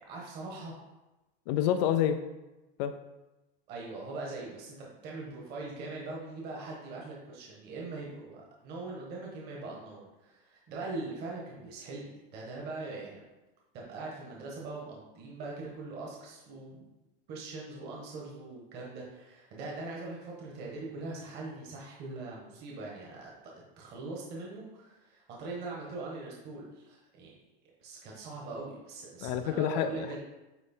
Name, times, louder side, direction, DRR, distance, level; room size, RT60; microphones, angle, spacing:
voice 1, 0.1-0.8 3.7-13.2 13.7-16.8 17.3-23.3 23.8-27.3 27.8-30.2, right 3 dB, 35° right, -3 dB, 1.4 m, -41 dB
voice 2, 1.5-2.2 2.8-2.9 29.2-30.2, left 10 dB, 45° left, 9 dB, 0.4 m, -28 dB
8.9 x 3.2 x 4.4 m, 1.0 s
supercardioid pair, 170°, 30 cm